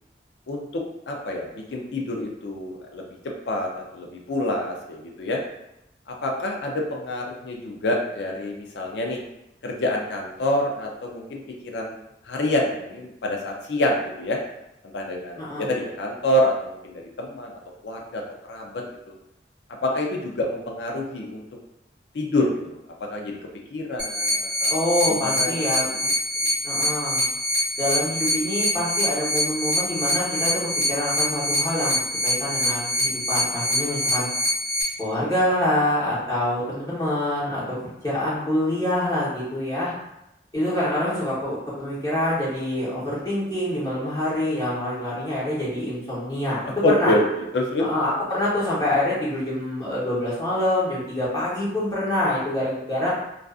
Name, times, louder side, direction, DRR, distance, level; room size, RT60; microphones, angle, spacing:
voice 1, 0.5-0.8 1.1-3.0 3.5-5.4 6.1-9.2 9.6-11.4 11.7-12.0 12.3-14.4 14.9-17.5 17.8-18.2 18.5-18.8 19.8-21.4 22.1-22.8 23.1-23.4 23.7-24.7 25.1-25.5 26.0-26.1 46.8-47.8, left 1 dB, 80° left, 0 dB, 0.4 m, -26 dB
voice 2, 15.4-15.7 24.7-25.9 26.6-27.2 27.8-34.3 35.0-37.6 38.0-39.9 40.5-47.1 47.8-53.1, left 1 dB, 20° left, -9 dB, 0.9 m, -26 dB
sound 1, 24.0-34.8, equal, 50° right, 0.9 m, -25 dB
2.4 x 2.4 x 2.3 m, 0.86 s
head